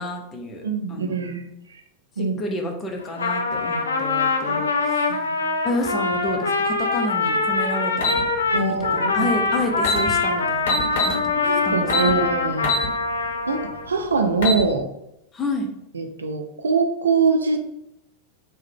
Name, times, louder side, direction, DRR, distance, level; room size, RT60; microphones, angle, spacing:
voice 1, 0.0-0.6 0.9-1.1 2.2-5.2 5.6-8.2 8.5-11.9 12.1-12.3 15.3-15.7, left 1 dB, 20° left, 2 dB, 0.6 m, -30 dB
voice 2, 0.6-1.5 2.2-2.4 4.5-4.6 5.1-5.4 8.5-9.3 11.4-12.8 13.5-14.9 15.9-17.6, right 4 dB, 70° right, 6 dB, 0.4 m, -23 dB
Trumpet, 3.0-13.9, left 3 dB, 75° left, 0.3 m, -23 dB
sound 1, 8.0-8.2 9.4-9.5 9.8-10.0 10.7-11.2 11.9-12.1 12.6-12.9 13.3-13.4 14.2-14.6, left 3 dB, 55° left, 0.9 m, -23 dB
3.1 x 2.2 x 3.5 m, 0.82 s
figure-of-eight pair, 90°, 0 cm